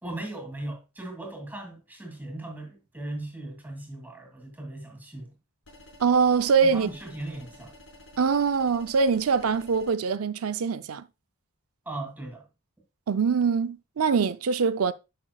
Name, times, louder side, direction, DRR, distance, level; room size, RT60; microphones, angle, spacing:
voice 1, 0.0-5.3 6.6-7.7 11.8-12.4, right 1 dB, 10° right, 2.5 m, -38 dB
sound 1, 5.7-9.9, left 1 dB, 65° left, 5.4 m, -51 dB
voice 2, 6.0-6.9 8.2-11.0 13.1-14.9, right 5 dB, 75° right, 0.5 m, -23 dB
10.5 x 6.0 x 2.3 m
head